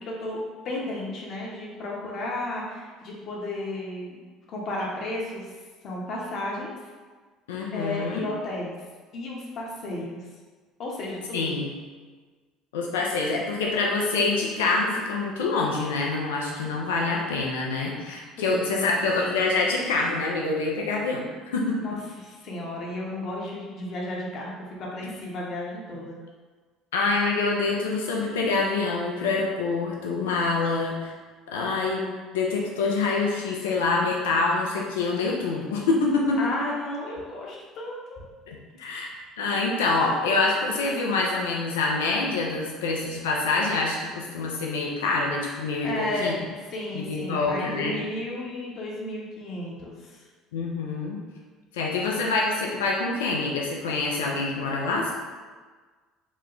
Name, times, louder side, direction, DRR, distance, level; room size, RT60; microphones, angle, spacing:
voice 1, 0.0-4.2 4.5-5.5 5.8-6.8 7.7-8.8 9.1-10.2 10.8-11.5 18.4-18.9 21.8-26.2 36.4-38.2 45.8-50.2, left 1 dB, 55° left, -3 dB, 0.9 m, -33 dB
voice 2, 7.5-8.3 11.3-11.7 12.7-21.2 21.5-21.8 26.9-31.1 31.5-32.1 32.3-36.4 38.5-46.3 46.9-48.0 50.5-51.2 51.7-55.1, left 3 dB, 85° left, -1 dB, 0.4 m, -26 dB
3.0 x 2.1 x 3.8 m, 1.4 s
hypercardioid pair, 70°, 0 cm